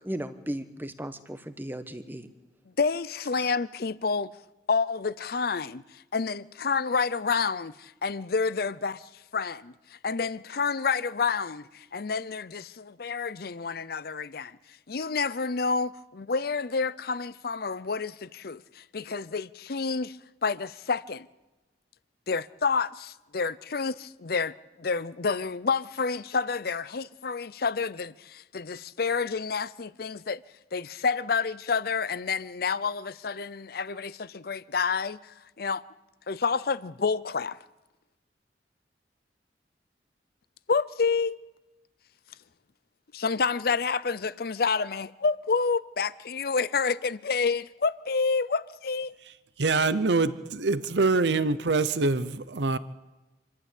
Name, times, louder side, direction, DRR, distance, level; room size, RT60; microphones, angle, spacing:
voice 1, 0.0-2.3 3.4-3.5, right 1 dB, 10° right, 1.1 m, -36 dB
voice 2, 2.8-4.3 4.7-5.8 6.1-9.0 9.3-9.7 10.0-14.6 14.9-20.2 20.4-21.3 22.3-24.5 24.8-30.4 30.7-35.8 36.3-37.6 40.7-41.4 43.1-49.1, left 5 dB, 55° left, 0.6 m, -29 dB
voice 3, 49.6-52.8, right 3 dB, 75° right, 0.8 m, -25 dB
27.0 x 12.5 x 8.5 m
head